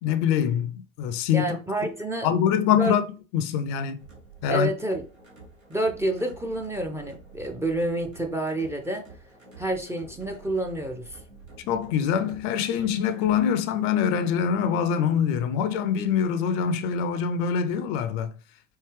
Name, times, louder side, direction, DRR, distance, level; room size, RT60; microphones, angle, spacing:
voice 1, 0.0-1.5 2.2-3.1 3.3-4.0 4.4-4.7 11.7-18.3, left 8 dB, 45° left, 0.5 m, -24 dB
voice 2, 1.3-2.3 2.7-2.9 4.5-5.0 5.7-9.0 9.6-11.2, right 1 dB, 5° right, 0.5 m, -28 dB
sound 1, 4.0-13.4, right 3 dB, 90° right, 1.5 m, -49 dB
4.5 x 2.9 x 3.2 m
figure-of-eight pair, 75°, 38 cm